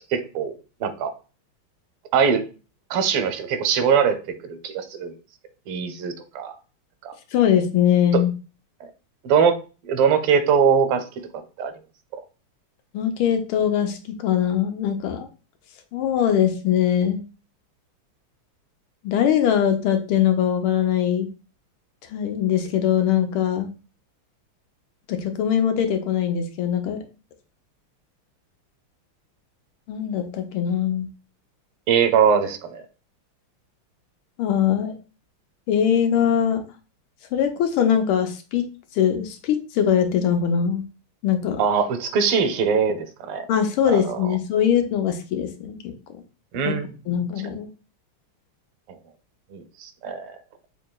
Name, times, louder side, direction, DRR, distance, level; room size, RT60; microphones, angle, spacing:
voice 1, 0.1-1.1 2.1-2.4 2.9-4.2 4.5-5.1 5.7-6.5 7.0-7.1 9.2-9.6 9.8-11.0 11.6-11.7 12.1-12.2 31.9-32.8 41.6-43.4 43.9-44.2 46.5-46.9 49.5-50.3, right 6 dB, 90° right, 9 dB, 1.6 m, -21 dB
voice 2, 7.3-8.3 12.9-15.3 15.9-17.2 19.0-21.3 22.1-23.7 25.1-27.0 29.9-31.1 34.4-35.0 35.7-36.6 37.3-38.7 38.9-40.8 41.2-41.6 43.5-46.2 46.6-46.7 47.1-47.7, left 9 dB, 80° left, 6 dB, 1.4 m, -22 dB
5.4 x 2.8 x 2.2 m, 0.33 s
omnidirectional pair, 2.4 m